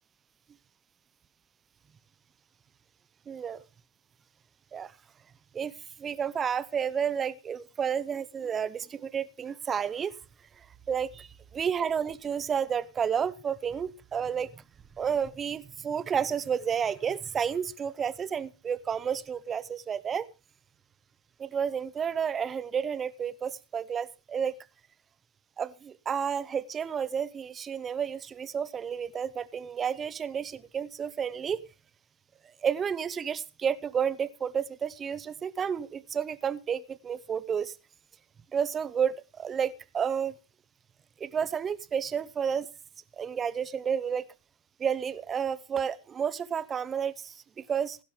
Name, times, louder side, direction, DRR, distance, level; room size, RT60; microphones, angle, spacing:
voice 1, 3.3-3.6 4.7-4.9 5.5-5.7 6.0-10.1 10.9-14.6 15.0-20.3 21.4-24.5 25.6-31.6 32.6-37.8 38.5-40.3 41.2-42.7 43.1-44.2 44.8-48.0, right 7 dB, 25° right, 19 dB, 0.8 m, -31 dB
16.0 x 12.0 x 3.3 m, 0.29 s
hypercardioid pair, 110°, 0 cm